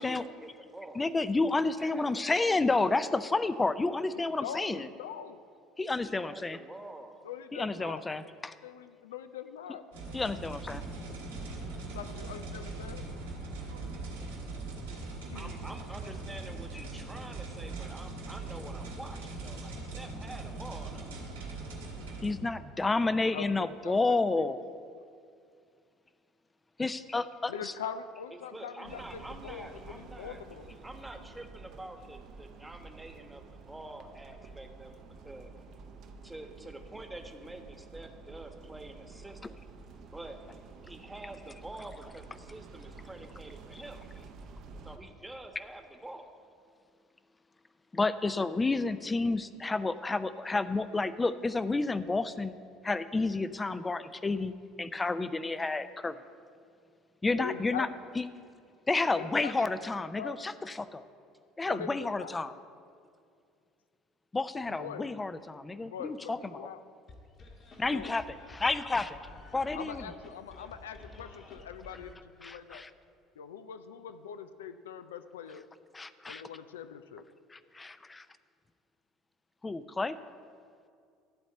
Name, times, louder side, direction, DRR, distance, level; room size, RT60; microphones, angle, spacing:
voice 1, 0.0-1.1 1.8-2.6 6.0-7.2 7.6-7.9 15.3-21.1 28.3-30.4 30.8-35.5 36.2-39.6 40.0-40.4 40.8-44.0 44.8-46.3, right 1 dB, 10° right, 5 dB, 1.1 m, -47 dB
voice 2, 1.0-4.9 5.8-6.6 7.5-8.5 10.1-10.8 22.2-24.6 26.8-27.7 47.9-52.5 52.8-56.2 57.2-57.9 58.2-58.3 58.9-61.0 61.6-62.5 64.3-66.7 67.8-69.2 69.5-70.0 72.4-72.9 75.9-76.4 77.5-78.2 79.6-80.2, left 3 dB, 20° left, 13 dB, 0.5 m, -30 dB
voice 3, 4.1-5.4 7.2-8.2 8.6-9.8 11.9-13.0 15.1-15.5 23.3-24.5 27.5-30.7 57.4-57.9 59.1-59.7 60.2-60.4 61.7-62.5 64.7-65.1 65.8-66.8 67.9-68.1 69.7-72.9 73.4-75.7 76.3-77.2, left 8 dB, 85° left, 11 dB, 0.4 m, -42 dB
sound 1, 9.9-22.3, right 3 dB, 85° right, 2.1 m, -41 dB
sound 2, 28.8-45.0, right 4 dB, 60° right, 0.8 m, -50 dB
sound 3, 67.1-72.1, left 3 dB, 45° left, 1.7 m, -51 dB
12.5 x 4.1 x 7.9 m, 2.3 s
hypercardioid pair, 65°, 0 cm